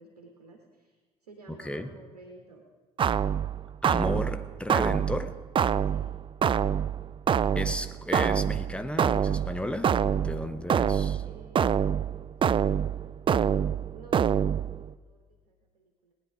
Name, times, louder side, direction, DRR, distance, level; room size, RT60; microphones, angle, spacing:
voice 1, 0.0-2.6 5.8-6.1 11.2-12.3 12.6-13.6 13.9-16.1, right 3 dB, 80° right, 3 dB, 1.1 m, -54 dB
voice 2, 1.5-1.9 3.8-5.4 7.5-11.2, left 1 dB, 5° left, 9 dB, 1.0 m, -34 dB
sound 1, 3.0-14.9, right 8 dB, 25° right, 0.3 m, -26 dB
19.5 x 9.5 x 4.8 m, 1.4 s
figure-of-eight pair, 50°, 19 cm